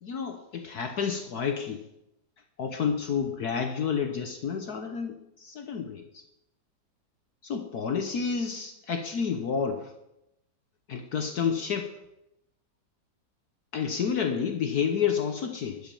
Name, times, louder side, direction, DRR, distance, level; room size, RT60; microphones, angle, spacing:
voice 1, 0.0-1.8 2.6-6.2 7.4-9.9 10.9-11.9 13.7-15.9, left 6 dB, 60° left, 5 dB, 1.5 m, -30 dB
12.0 x 8.2 x 7.0 m, 0.85 s
omnidirectional pair, 2.0 m